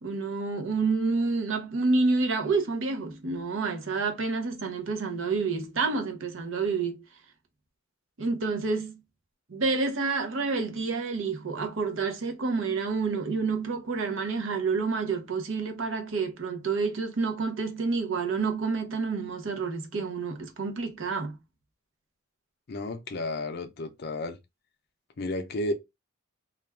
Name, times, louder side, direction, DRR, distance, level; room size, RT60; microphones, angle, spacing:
voice 1, 0.0-7.0 8.2-9.0 9.5-21.4, right 4 dB, 70° right, 0.6 m, -29 dB
voice 2, 22.7-24.4 25.2-25.7, left 2 dB, 50° left, 0.5 m, -32 dB
2.4 x 2.2 x 3.2 m
head